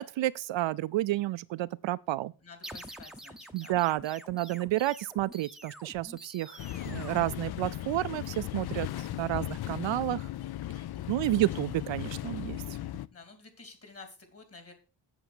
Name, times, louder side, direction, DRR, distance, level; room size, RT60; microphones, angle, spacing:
voice 1, 0.0-2.3 3.5-10.3 11.1-12.6, right 15 dB, 70° right, 0.5 m, -31 dB
voice 2, 2.4-3.8 13.1-14.7, left 4 dB, 30° left, 3.0 m, -51 dB
sound 1, 2.6-8.1, right 1 dB, ahead, 0.8 m, -48 dB
sound 2, 6.6-13.1, left 13 dB, 55° left, 0.6 m, -37 dB
8.1 x 7.6 x 6.1 m
wide cardioid pair, 130°, 47 cm